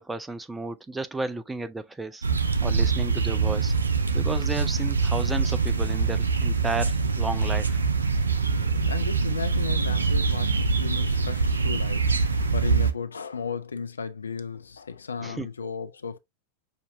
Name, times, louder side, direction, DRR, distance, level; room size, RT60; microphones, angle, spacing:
voice 1, 0.0-2.3 2.6-3.7 4.1-7.8 15.2-15.5, right 3 dB, 10° right, 0.5 m, -33 dB
sound 1, 2.2-12.9, right 4 dB, 75° right, 0.5 m, -24 dB
voice 2, 8.5-16.2, left 5 dB, 75° left, 0.5 m, -35 dB
6.5 x 2.7 x 2.6 m
figure-of-eight pair, 90°, 0 cm